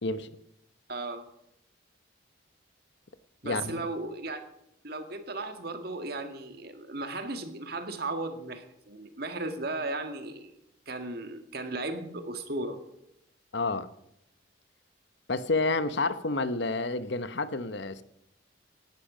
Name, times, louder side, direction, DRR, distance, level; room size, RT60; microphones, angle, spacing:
voice 1, 0.9-1.3 3.4-4.5 4.8-10.5 10.9-12.8, right 2 dB, 55° right, 2.0 m, -36 dB
voice 2, 3.4-3.8 13.5-13.9 15.3-18.0, left 3 dB, 60° left, 1.0 m, -29 dB
18.0 x 11.5 x 5.1 m
head